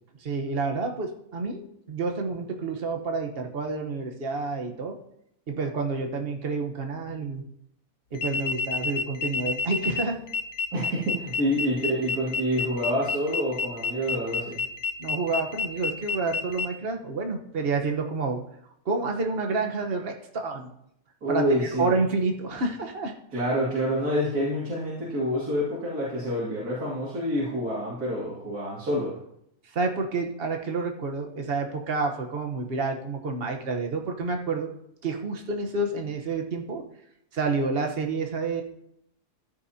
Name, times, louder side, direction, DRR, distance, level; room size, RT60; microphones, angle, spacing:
voice 1, 0.2-4.9 5.5-7.4 8.1-10.2 15.0-18.4 18.8-20.7 21.3-23.1 29.6-34.7 35.0-36.8 37.3-38.6, right 3 dB, 40° right, 3 dB, 1.3 m, -29 dB
sound 1, 8.1-16.7, left 5 dB, 70° left, 1.3 m, -29 dB
voice 2, 10.7-14.6 21.2-21.9 23.3-29.2, equal, 80° right, -6 dB, 2.9 m, -27 dB
14.5 x 9.7 x 2.8 m, 0.77 s
omnidirectional pair, 1.6 m